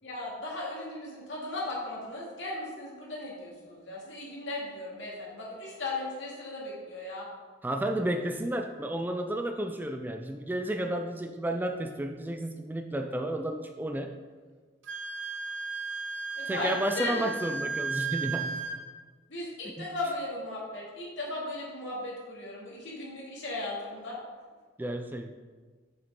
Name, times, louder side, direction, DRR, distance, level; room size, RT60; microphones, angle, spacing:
voice 1, 0.0-7.3 16.4-17.3 19.3-24.2, left 2 dB, 70° left, -5 dB, 2.4 m, -36 dB
voice 2, 7.6-14.2 16.5-18.6 19.7-19.9 24.8-25.4, right 1 dB, 10° right, 6 dB, 0.3 m, -32 dB
Wind instrument woodwind instrument, 14.8-18.8, right 4 dB, 80° right, 0.9 m, -35 dB
7.2 x 6.7 x 3.7 m, 1.5 s
head